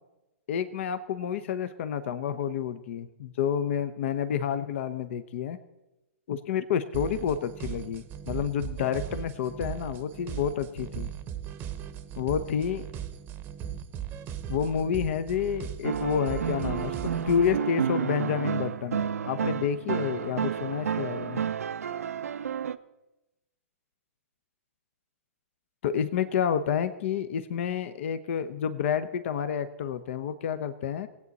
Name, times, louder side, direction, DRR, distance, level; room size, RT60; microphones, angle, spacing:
voice 1, 0.5-5.6 6.3-11.1 12.2-12.8 14.5-17.0 17.2-21.4 25.8-31.1, left 8 dB, 55° left, 12 dB, 0.8 m, -29 dB
sound 1, 6.9-17.6, right 9 dB, 25° right, 0.8 m, -38 dB
sound 2, 15.8-22.8, right 7 dB, 85° right, 0.5 m, -31 dB
19.0 x 8.4 x 4.1 m, 1.0 s
hypercardioid pair, 125°, 8 cm